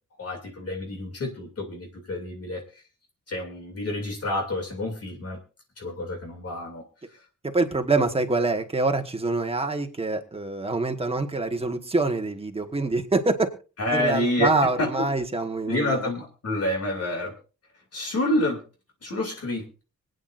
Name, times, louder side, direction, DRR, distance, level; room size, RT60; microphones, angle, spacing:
voice 1, 0.2-2.6 3.3-5.4 5.8-6.8 13.8-14.5 14.8-15.1 15.7-17.3 17.9-18.6 19.0-19.8, left 1 dB, 50° left, 2 dB, 2.6 m, -28 dB
voice 2, 7.4-13.5 13.9-16.1, right 3 dB, 20° right, 6 dB, 1.3 m, -25 dB
25.0 x 9.2 x 2.5 m, 0.33 s
wide cardioid pair, 165°, 30 cm